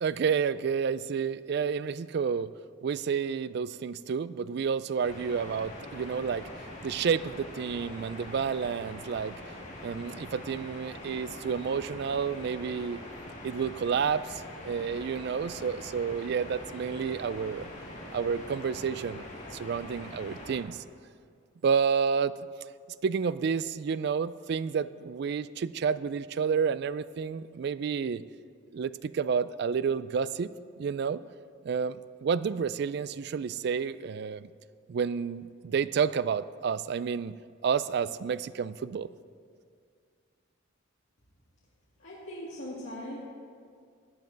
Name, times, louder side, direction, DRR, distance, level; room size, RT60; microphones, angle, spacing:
voice 1, 0.0-2.5 2.8-6.5 6.8-9.4 9.8-13.0 13.4-17.7 18.1-19.3 19.5-20.8 21.6-22.4 23.0-28.2 28.7-30.5 30.8-31.2 31.6-34.5 34.9-37.4 37.6-39.1, right 6 dB, 55° right, 16 dB, 0.3 m, -30 dB
sound 1, 5.0-20.6, left 1 dB, 35° left, 2.0 m, -43 dB
voice 2, 42.0-43.2, left 1 dB, 70° left, -7 dB, 2.1 m, -40 dB
16.5 x 9.5 x 3.9 m, 2.2 s
head